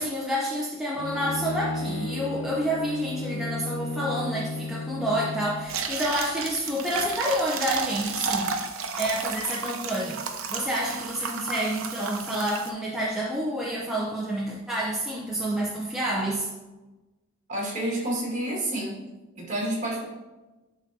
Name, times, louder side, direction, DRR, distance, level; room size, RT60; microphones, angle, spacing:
voice 1, 0.0-8.6 8.9-10.2 10.5-16.5, equal, ahead, -5 dB, 0.6 m, -28 dB
Bowed string instrument, 1.0-5.7, left 2 dB, 60° left, 0.6 m, -34 dB
sound 1, 5.6-12.7, right 5 dB, 70° right, 0.7 m, -33 dB
voice 2, 17.5-19.0 19.3-20.0, right 1 dB, 35° right, -4 dB, 1.9 m, -29 dB
10.0 x 3.8 x 2.7 m, 1.1 s
head